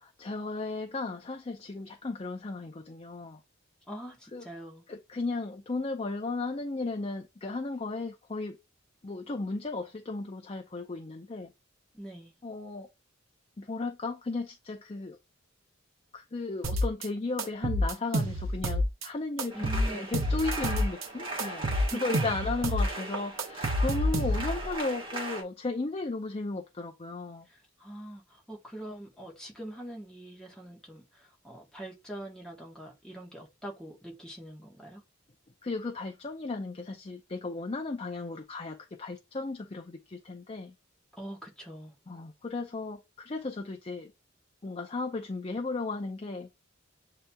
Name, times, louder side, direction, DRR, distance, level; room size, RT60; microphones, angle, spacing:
voice 1, 0.0-3.4 4.3-4.4 4.9-8.6 9.0-11.5 12.4-12.9 13.6-15.2 16.1-27.5 35.6-40.7 42.1-44.1 44.6-46.5, left 3 dB, 30° left, 0.5 m, -35 dB
voice 2, 3.9-4.8 11.9-12.3 19.5-20.2 21.7-22.2 27.5-35.0 41.1-41.9, right 1 dB, 5° left, 1.2 m, -43 dB
sound 1, 16.6-17.1 17.4-19.1 19.4-21.1 21.4-22.9 23.1-24.6, equal, 85° right, 0.8 m, -28 dB
sound 2, 19.5-25.4, right 2 dB, 25° right, 1.3 m, -38 dB
7.7 x 2.8 x 2.2 m
head